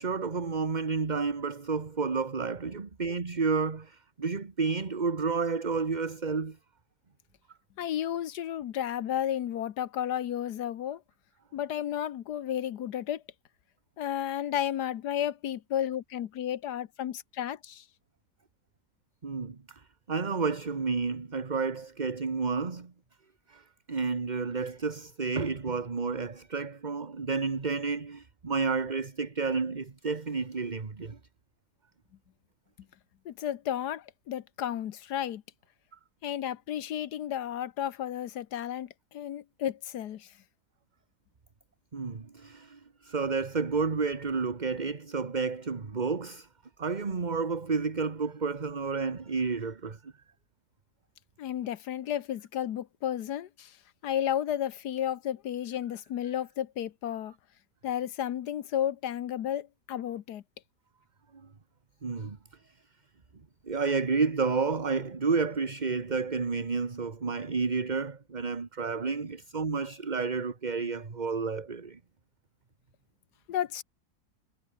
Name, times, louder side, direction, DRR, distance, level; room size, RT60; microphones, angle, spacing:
voice 1, 0.0-6.6 19.2-22.9 23.5-31.2 35.9-36.0 41.9-46.5 46.8-50.1 62.0-62.4 63.6-72.0, right 4 dB, 30° right, 1.4 m, -31 dB
voice 2, 7.8-11.0 11.5-13.2 14.0-17.8 33.2-35.4 36.2-40.3 51.4-53.8 54.0-57.3 57.8-60.4 73.5-73.8, left 10 dB, 75° left, 1.4 m, -32 dB
omnidirectional pair, 1.8 m